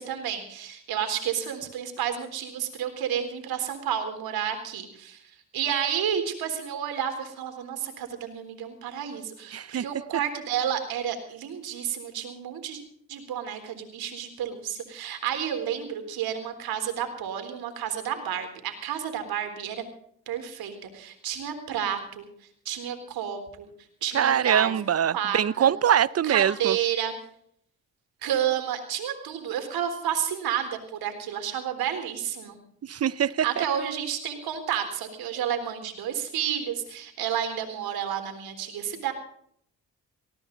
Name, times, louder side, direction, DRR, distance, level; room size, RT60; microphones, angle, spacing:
voice 1, 0.0-5.2 5.5-12.8 13.1-19.8 20.3-22.3 22.7-23.7 24.0-24.7 25.1-25.7 26.2-27.1 28.2-32.6 33.4-39.1, right 9 dB, 80° right, 7 dB, 3.9 m, -31 dB
voice 2, 9.5-9.8 24.1-26.8 32.8-33.6, right 9 dB, 45° right, 20 dB, 0.7 m, -23 dB
19.5 x 17.0 x 4.0 m, 0.65 s
supercardioid pair, 60°, 36 cm